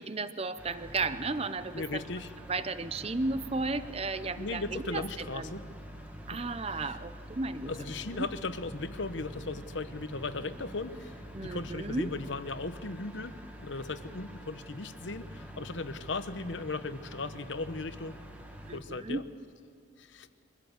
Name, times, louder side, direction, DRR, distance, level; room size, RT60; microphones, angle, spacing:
voice 1, 0.0-2.0 2.5-5.5 6.3-7.7 8.1-8.3 11.3-12.1 18.7-19.2, right 3 dB, 30° right, 12 dB, 0.7 m, -34 dB
sound 1, 0.6-18.8, equal, 10° right, 1.6 m, -46 dB
voice 2, 1.7-2.3 4.4-5.7 6.3-6.4 6.8-7.0 7.7-13.3 13.6-18.2 18.7-19.2 20.0-20.3, left 3 dB, 65° left, 11 dB, 1.0 m, -37 dB
24.0 x 16.0 x 8.1 m, 2.3 s
head